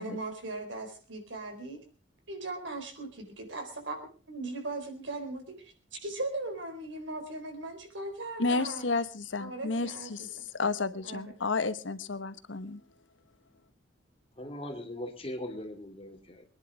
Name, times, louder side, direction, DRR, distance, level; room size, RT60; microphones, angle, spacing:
voice 1, 0.0-1.8 2.3-4.0 4.3-5.7 6.0-8.8 9.4-10.5 11.0-11.3, right 2 dB, 85° right, 5 dB, 4.1 m, -38 dB
voice 2, 8.4-12.8, left 3 dB, 90° left, 13 dB, 1.0 m, -32 dB
voice 3, 14.4-16.4, left 1 dB, 30° left, 4 dB, 2.4 m, -40 dB
23.5 x 10.5 x 4.8 m, 0.37 s
head